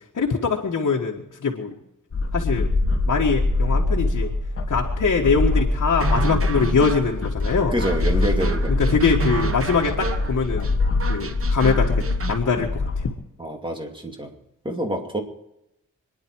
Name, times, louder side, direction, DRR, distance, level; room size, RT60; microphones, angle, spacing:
voice 1, 0.1-1.7 2.3-2.7 3.0-4.3 4.7-7.7 8.7-10.7 11.1-11.9 12.3-13.1, left 5 dB, 65° left, -1 dB, 1.7 m, -23 dB
sound 1, 2.1-13.1, left 2 dB, 45° left, 1.6 m, -24 dB
sound 2, 6.0-12.4, right 5 dB, 45° right, 1.2 m, -31 dB
voice 2, 7.7-8.8 13.4-14.3 14.6-15.2, equal, 15° right, 2 dB, 2.5 m, -27 dB
26.0 x 10.5 x 4.7 m, 0.85 s
wide cardioid pair, 135°, 31 cm